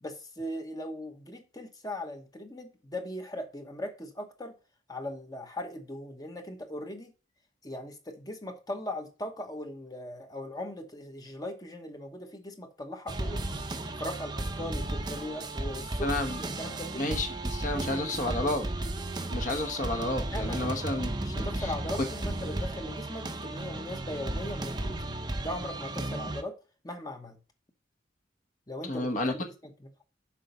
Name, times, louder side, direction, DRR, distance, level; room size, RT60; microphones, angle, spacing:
voice 1, 0.0-4.5 4.9-7.1 7.6-13.6 14.0-16.1 16.4-17.2 17.6-18.4 20.3-20.8 21.2-26.6 26.8-27.4 28.7-29.9, left 1 dB, 20° left, 1.0 m, -39 dB
sound 1, 13.1-26.4, right 2 dB, 25° right, 0.7 m, -34 dB
voice 2, 16.0-16.4 17.0-18.7 19.3-21.7 22.0-22.1 28.9-29.3, left 2 dB, 45° left, 1.2 m, -31 dB
7.4 x 4.9 x 5.5 m
head